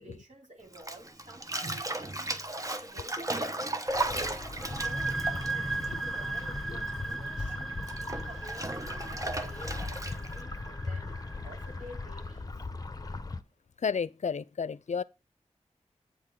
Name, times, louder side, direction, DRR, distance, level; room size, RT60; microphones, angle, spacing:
voice 1, 0.0-3.6 4.0-11.2 11.4-12.5, equal, 75° right, 3.4 m, -51 dB
Bathtub (filling or washing), 0.7-6.6 6.9-10.4, right 2 dB, 25° right, 1.1 m, -35 dB
sound 1, 3.9-13.4, left 3 dB, 30° left, 0.9 m, -39 dB
sound 2, 4.6-12.0, right 2 dB, ahead, 0.6 m, -37 dB
voice 2, 13.8-15.0, left 6 dB, 70° left, 0.5 m, -31 dB
8.8 x 3.7 x 6.8 m
cardioid pair, 45°, 13 cm